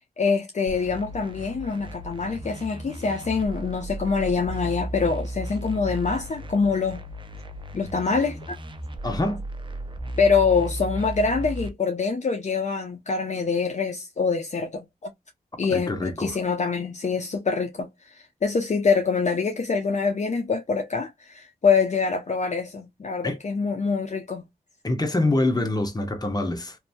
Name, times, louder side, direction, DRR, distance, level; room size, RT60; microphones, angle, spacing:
voice 1, 0.2-7.0 7.7-8.6 10.2-15.1 15.6-24.4, left 5 dB, 45° left, 0.7 m, -25 dB
sound 1, 0.7-11.7, right 1 dB, 30° right, 0.6 m, -35 dB
voice 2, 9.0-9.4 15.7-16.4 23.2-23.4 24.8-26.8, left 2 dB, 25° left, 1.0 m, -25 dB
2.9 x 2.6 x 2.3 m
cardioid pair, 55°, 16 cm